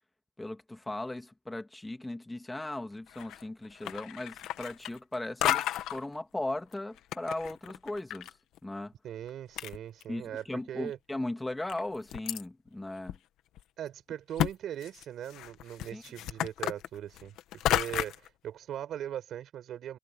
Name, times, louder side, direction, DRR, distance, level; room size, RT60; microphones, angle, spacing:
voice 1, 0.4-8.3 8.6-8.9 10.1-13.2 15.9-16.0, left 2 dB, 15° left, 1.9 m, -37 dB
sound 1, 3.1-3.5 3.8-5.1 5.4-6.0 6.7-8.3 8.6-8.7 9.3-9.4 9.6-10.4 10.9-11.0 11.7-12.4 13.1-13.2 13.6-13.7 14.4-14.5 14.8-18.3, left 13 dB, 90° left, 1.4 m, -32 dB
voice 2, 9.0-11.0 13.8-17.3 17.6-20.0, right 10 dB, 75° right, 4.7 m, -40 dB
cardioid pair, 90°, 0 cm